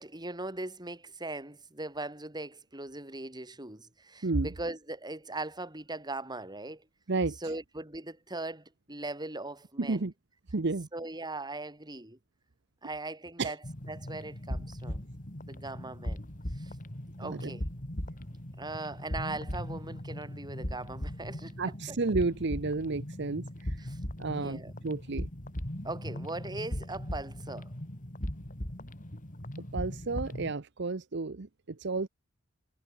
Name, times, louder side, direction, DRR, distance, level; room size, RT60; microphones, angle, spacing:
voice 1, 0.0-6.9 7.4-10.1 10.9-12.2 12.8-13.6 13.9-15.1 15.5-16.8 17.2-17.6 18.6-21.5 21.9-22.0 23.8-24.7 25.8-27.7, right 2 dB, 20° right, 6.3 m, -40 dB
voice 2, 9.8-10.1 10.5-10.9 13.4-13.5 17.2-17.5 21.6-23.8 24.2-25.3 29.7-32.1, right 3 dB, 60° right, 0.9 m, -31 dB
sound 1, 13.6-30.5, left 1 dB, 45° left, 3.0 m, -39 dB
head